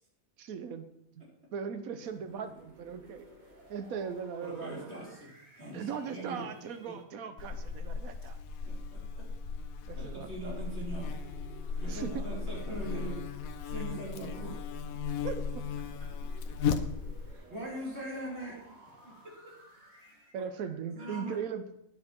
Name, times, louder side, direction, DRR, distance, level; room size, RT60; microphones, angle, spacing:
voice 1, 0.4-0.9 1.2-1.3 1.5-3.3 3.7-4.9 5.7-8.4 9.9-10.3 11.9-12.3 15.2-15.6 20.3-21.6, right 6 dB, 85° right, 9 dB, 1.3 m, -38 dB
sound 1, 1.9-7.0 10.1-13.9 14.6-20.4, right 1 dB, 30° right, 2.6 m, -57 dB
voice 2, 4.4-6.5 6.9-7.0 8.7-9.3 9.8-11.2 11.8-13.2 13.6-14.7 17.2-19.6 20.3-21.4, right 1 dB, 50° right, -4 dB, 4.1 m, -42 dB
Buzz, 7.4-17.3, left 5 dB, 85° left, 1.2 m, -36 dB
9.8 x 9.8 x 4.4 m, 0.76 s
omnidirectional pair, 1.4 m